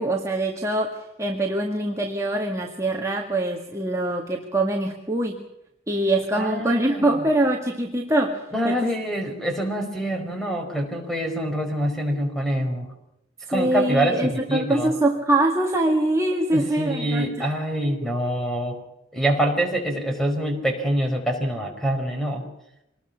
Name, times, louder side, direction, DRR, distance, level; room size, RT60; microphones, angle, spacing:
voice 1, 0.0-5.4 5.9-8.9 13.5-17.6, right 1 dB, 15° right, 0 dB, 1.9 m, -24 dB
voice 2, 6.3-7.2 8.5-12.9 13.5-14.9 16.5-18.8 19.1-22.4, right 1 dB, ahead, 3 dB, 5.0 m, -25 dB
26.0 x 20.5 x 6.0 m, 0.84 s
head